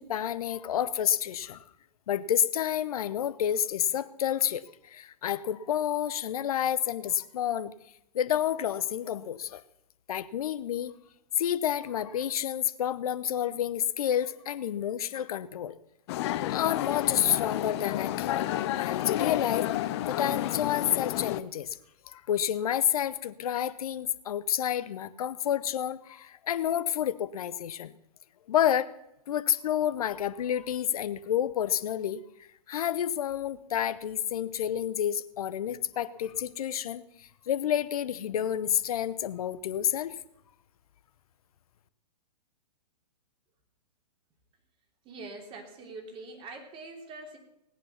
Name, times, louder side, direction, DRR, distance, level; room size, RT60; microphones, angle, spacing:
voice 1, 0.0-1.6 2.1-7.7 8.1-9.6 10.1-10.9 11.4-15.7 16.5-18.5 18.8-19.7 20.1-21.8 22.1-27.9 28.5-28.9 29.3-32.2 32.7-37.0 37.5-40.2, left 10 dB, 60° left, 14 dB, 1.0 m, -29 dB
sound 1, 16.1-21.4, left 14 dB, 40° left, 0.8 m, -31 dB
voice 2, 45.0-47.4, right 3 dB, 25° right, 3 dB, 3.2 m, -43 dB
17.5 x 10.0 x 5.8 m, 0.84 s
hypercardioid pair, 125°, 21 cm